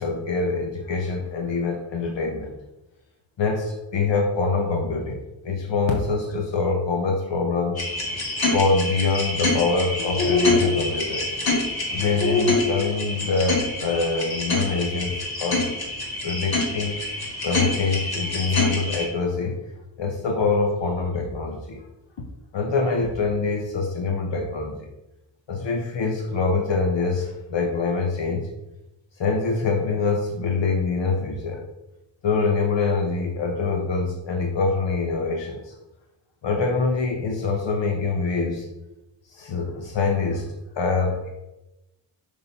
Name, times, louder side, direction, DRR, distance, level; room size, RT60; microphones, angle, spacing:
voice 1, 0.0-2.5 3.4-7.8 8.5-11.3 11.9-15.7 16.2-17.0 17.4-19.6 20.0-21.8 22.5-24.9 25.5-28.5 29.2-31.6 32.2-35.7 36.4-38.7 39.3-40.4 40.7-41.3, left 4 dB, 75° left, 2 dB, 1.3 m, -25 dB
sound 1, 7.8-19.1, left 2 dB, 55° left, 2.1 m, -25 dB
6.8 x 5.4 x 5.5 m, 0.96 s
cardioid pair, 90°, 44 cm